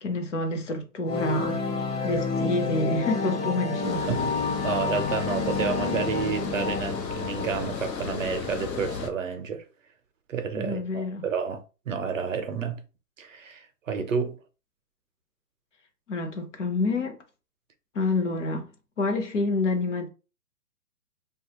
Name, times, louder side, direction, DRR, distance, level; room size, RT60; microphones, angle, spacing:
voice 1, 0.0-1.7 2.0-4.2 10.5-11.3 16.1-17.2 17.9-18.7 19.0-20.1, left 2 dB, 50° left, 0.7 m, -28 dB
sound 1, 1.1-8.0, left 4 dB, 70° left, 1.1 m, -29 dB
Water, 3.8-9.1, left 6 dB, 90° left, 0.9 m, -34 dB
voice 2, 4.0-4.3 4.6-9.7 10.3-12.8 13.2-14.4, right 6 dB, 55° right, 0.5 m, -30 dB
2.8 x 2.3 x 2.8 m
hypercardioid pair, 165°, 49 cm